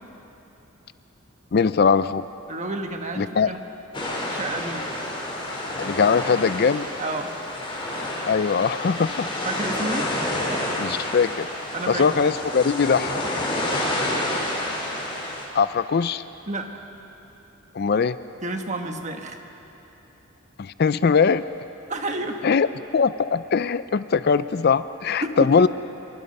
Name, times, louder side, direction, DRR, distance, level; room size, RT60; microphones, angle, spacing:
voice 1, 1.5-2.3 3.2-3.5 5.8-6.9 8.2-9.3 10.8-11.5 11.9-13.2 15.5-16.2 17.7-18.2 20.6-21.4 22.4-22.7 22.9-25.7, left 5 dB, 50° left, 14 dB, 0.4 m, -21 dB
voice 2, 2.5-3.6 4.0-4.9 7.0-7.3 9.4-10.1 11.7-12.1 16.5-16.7 18.4-19.4 21.9-22.4 25.2-25.5, right 2 dB, 35° right, 4 dB, 1.5 m, -30 dB
sound 1, 3.9-15.4, left 1 dB, 25° left, 3.8 m, -29 dB
25.5 x 22.5 x 5.4 m, 3.0 s
head